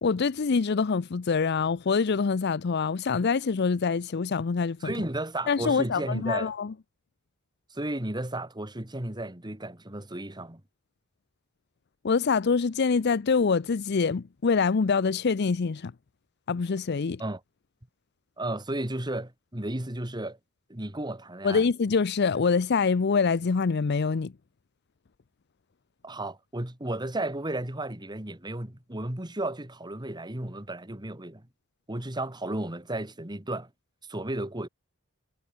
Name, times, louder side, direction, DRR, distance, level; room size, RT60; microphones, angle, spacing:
voice 1, 0.0-4.9 5.5-6.7 12.0-15.9 16.5-17.2 21.4-24.3, left 5 dB, 55° left, 0.5 m, -25 dB
voice 2, 4.8-6.5 7.7-10.6 17.2-17.4 18.4-20.4 20.7-21.6 26.0-31.5 31.9-33.7 34.1-34.7, right 1 dB, 20° right, 2.2 m, -33 dB
head